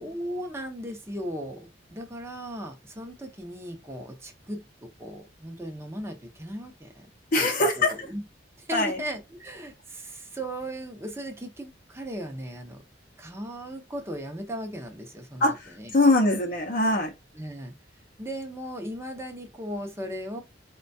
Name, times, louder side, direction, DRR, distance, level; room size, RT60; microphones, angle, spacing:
voice 1, 0.0-7.1 7.4-7.5 7.8-8.2 8.6-12.8 13.2-15.9 17.3-17.7 18.2-20.4, equal, 15° right, 0.6 m, -37 dB
voice 2, 7.3-7.9 8.7-9.0 15.4-17.1, left 2 dB, 50° left, 0.6 m, -22 dB
4.2 x 2.2 x 2.6 m
head